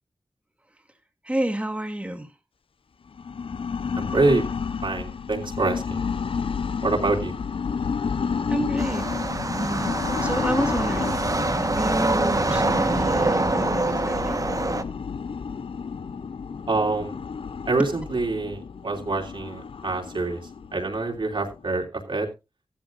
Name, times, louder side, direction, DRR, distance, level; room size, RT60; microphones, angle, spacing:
voice 1, 1.2-2.3 8.5-9.1 9.6-11.3 11.6-14.4, right 1 dB, 15° right, 2.3 m, -30 dB
sound 1, 3.1-21.8, left 6 dB, 75° left, 0.6 m, -31 dB
voice 2, 4.0-4.4 4.8-6.1 6.8-7.3 16.7-17.1 17.7-20.4 20.7-22.3, right 3 dB, 65° right, 3.1 m, -25 dB
sound 2, 8.8-14.8, right 2 dB, 40° right, 1.2 m, -25 dB
14.5 x 13.0 x 2.5 m
cardioid pair, 45°, 9 cm